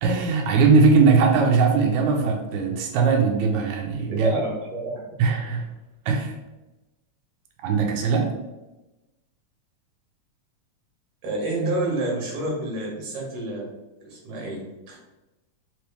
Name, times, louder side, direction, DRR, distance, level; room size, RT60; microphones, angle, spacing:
voice 1, 0.0-4.3 5.2-5.7 6.1-6.4 7.6-8.3, right 4 dB, 90° right, 1 dB, 2.0 m, -20 dB
voice 2, 4.1-4.9 11.2-13.7 14.0-15.0, right 2 dB, 55° right, -3 dB, 2.1 m, -29 dB
4.8 x 3.0 x 3.3 m, 1.0 s
omnidirectional pair, 3.4 m